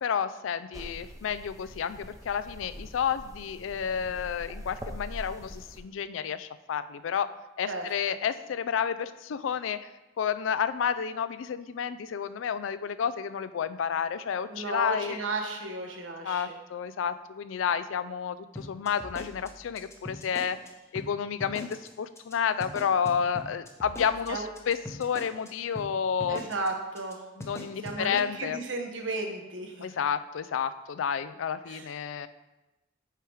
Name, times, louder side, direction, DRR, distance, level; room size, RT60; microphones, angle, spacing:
voice 1, 0.0-9.9 10.2-15.3 16.2-20.6 20.9-26.4 27.4-28.6 29.8-32.3, left 7 dB, 80° left, 13 dB, 0.4 m, -30 dB
sound 1, 0.7-5.8, equal, 20° right, 0.7 m, -44 dB
voice 2, 14.5-16.6 24.3-24.5 26.3-27.2 27.8-29.9 31.7-31.8, right 2 dB, 75° right, 3 dB, 1.1 m, -34 dB
sound 2, 18.6-20.7 21.0-21.1 21.4-21.9 22.2-22.3 22.6-25.5 25.8-25.9 26.2-26.7 27.0-27.1 27.4-28.0, left 1 dB, 15° left, 0.8 m, -41 dB
6.6 x 4.6 x 4.8 m, 1.0 s
head